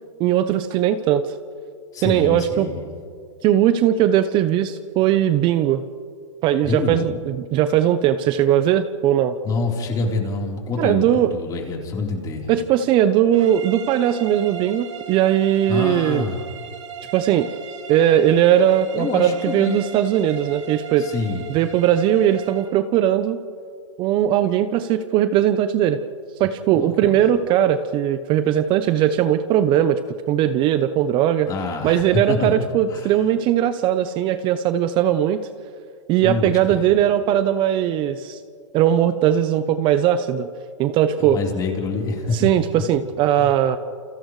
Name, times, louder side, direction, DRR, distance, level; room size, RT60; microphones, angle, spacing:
voice 1, 0.2-1.2 2.0-2.7 3.4-5.8 6.4-9.4 10.8-11.3 12.5-16.3 17.1-17.5 17.9-21.1 21.5-23.4 24.0-26.0 26.4-30.0 30.3-31.5 31.8-35.4 36.1-38.4 38.7-40.5 40.8-41.4 42.3-43.8, right 11 dB, 30° right, 11 dB, 0.7 m, -19 dB
voice 2, 1.9-2.8 6.6-7.0 9.4-12.5 15.7-16.4 18.9-19.8 21.0-21.5 26.7-27.2 31.5-32.5 32.9-33.1 36.2-36.9 41.2-42.5 43.4-43.5, left 3 dB, 25° left, -1 dB, 3.9 m, -26 dB
sound 1, 13.3-22.8, right 7 dB, 75° right, 3.3 m, -38 dB
29.0 x 28.0 x 3.2 m, 2.2 s
hypercardioid pair, 140°, 16 cm